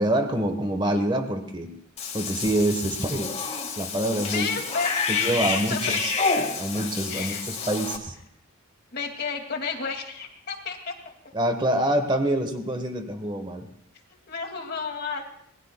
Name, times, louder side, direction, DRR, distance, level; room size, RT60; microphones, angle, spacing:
voice 1, 0.0-1.7 2.1-3.3 3.8-4.5 5.1-6.1 6.6-8.1 11.3-13.7, right 1 dB, 25° right, 5 dB, 1.3 m, -26 dB
Cat / Bathtub (filling or washing), 2.0-8.0, left 5 dB, 35° left, 1.8 m, -29 dB
voice 2, 4.2-6.3 7.1-7.4 8.9-11.1 14.3-15.2, left 5 dB, 50° left, 3 dB, 2.4 m, -32 dB
27.0 x 20.0 x 2.3 m, 0.68 s
head